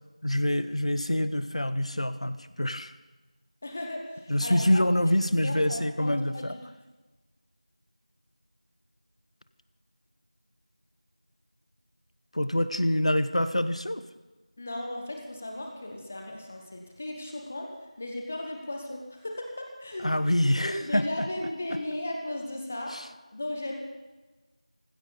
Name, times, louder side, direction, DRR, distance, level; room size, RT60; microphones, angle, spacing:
voice 1, 0.2-2.9 4.3-6.6 12.3-14.0 20.0-21.3 22.9-23.1, left 1 dB, 60° left, 12 dB, 1.1 m, -26 dB
voice 2, 3.6-4.8 5.4-6.6 14.6-17.7 18.0-20.2 20.6-22.9 23.3-23.7, left 1 dB, 15° left, 2 dB, 1.1 m, -36 dB
19.5 x 16.0 x 4.0 m, 1.2 s
figure-of-eight pair, 175°, 4 cm